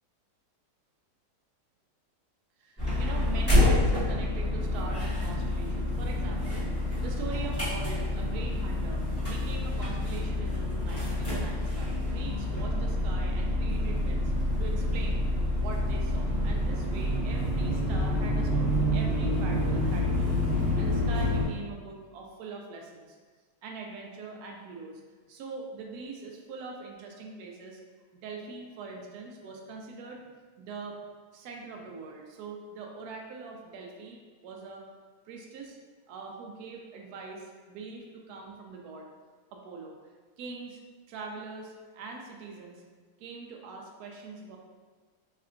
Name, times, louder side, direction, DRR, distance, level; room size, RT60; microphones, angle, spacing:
voice 1, 2.6-14.3 14.6-23.2 23.6-25.0 25.3-27.8 28.1-30.3 30.6-31.0 31.3-34.9 35.3-35.8 36.1-39.1 39.5-40.0 40.4-40.8 41.1-42.8 43.2-44.6, right 4 dB, 70° right, 1 dB, 1.0 m, -42 dB
sound 1, 2.8-21.4, left 1 dB, 10° left, 1.0 m, -28 dB
sound 2, 12.4-17.9, right 2 dB, 75° left, 1.3 m, -42 dB
3.7 x 3.2 x 2.5 m, 1.5 s
omnidirectional pair, 1.8 m